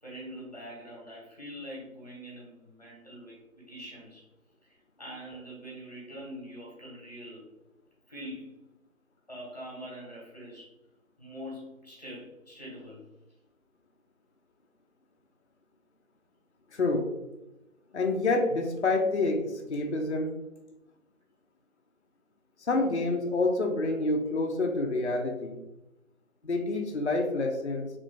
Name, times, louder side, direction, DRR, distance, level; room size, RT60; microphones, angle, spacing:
voice 1, 0.0-3.4 3.7-4.3 4.6-4.7 5.0-7.4 8.1-8.7 9.3-10.7 11.2-13.0, equal, 30° left, -5 dB, 1.0 m, -44 dB
voice 2, 16.7-17.1 17.9-20.3 22.7-25.6 26.4-27.9, left 2 dB, 55° left, 3 dB, 0.5 m, -28 dB
3.0 x 2.6 x 3.3 m, 0.96 s
figure-of-eight pair, 175°, 41 cm